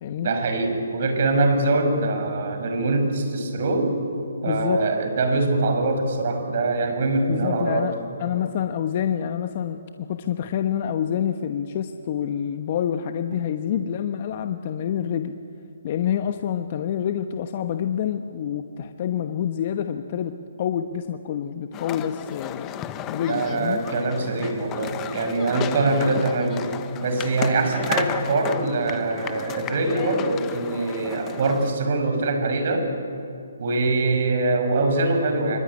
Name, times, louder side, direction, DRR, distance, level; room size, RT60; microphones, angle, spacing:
voice 1, 0.2-4.0 4.4-7.9 23.3-26.7 27.0-32.9 33.6-35.6, right 2 dB, 50° right, 6 dB, 6.2 m, -23 dB
voice 2, 4.4-4.9 7.3-15.4 15.8-22.7 23.1-23.8, left 9 dB, 40° left, 7 dB, 1.1 m, -27 dB
sound 1, 21.7-31.7, left 10 dB, 20° left, 1.1 m, -34 dB
25.5 x 24.0 x 9.8 m, 2.6 s
hypercardioid pair, 150°, 0 cm